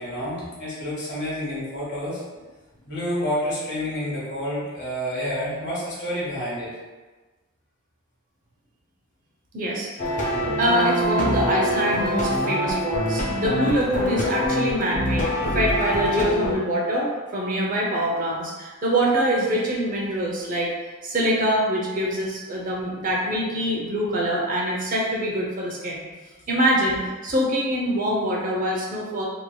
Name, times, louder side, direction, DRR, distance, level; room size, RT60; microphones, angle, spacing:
voice 1, 0.0-2.2 2.9-6.7, equal, 50° left, -7 dB, 1.3 m, -29 dB
voice 2, 9.5-20.7 21.0-26.0 26.5-29.2, equal, 40° right, -3 dB, 0.6 m, -24 dB
sound 1, 10.0-16.5, equal, 35° left, 0.4 m, -25 dB
3.1 x 2.8 x 2.2 m, 1.2 s
head